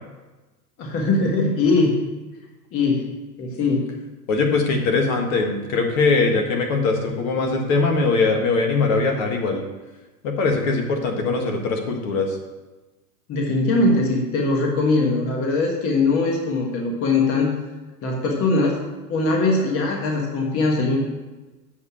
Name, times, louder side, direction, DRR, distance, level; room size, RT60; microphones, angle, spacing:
voice 1, 0.8-1.9 2.7-3.1 3.4-3.9 13.3-17.5 18.0-18.8 19.1-21.0, left 3 dB, 25° left, 0 dB, 1.4 m, -21 dB
voice 2, 4.3-9.7 10.2-12.4, left 3 dB, 50° left, 3 dB, 1.7 m, -21 dB
7.8 x 5.5 x 7.0 m, 1.1 s
hypercardioid pair, 135°, 49 cm